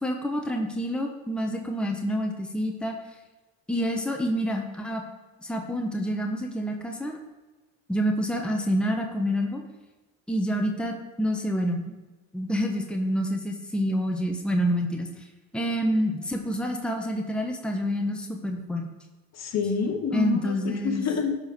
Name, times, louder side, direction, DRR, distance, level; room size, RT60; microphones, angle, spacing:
voice 1, 0.0-2.9 3.7-5.0 5.4-7.2 7.9-9.6 10.3-11.8 12.3-15.1 15.5-18.9 20.1-21.0, equal, 5° left, 2 dB, 1.2 m, -27 dB
voice 2, 19.3-21.4, left 6 dB, 45° left, 5 dB, 1.4 m, -27 dB
11.5 x 4.9 x 5.4 m, 1.2 s
supercardioid pair, 100°, 35 cm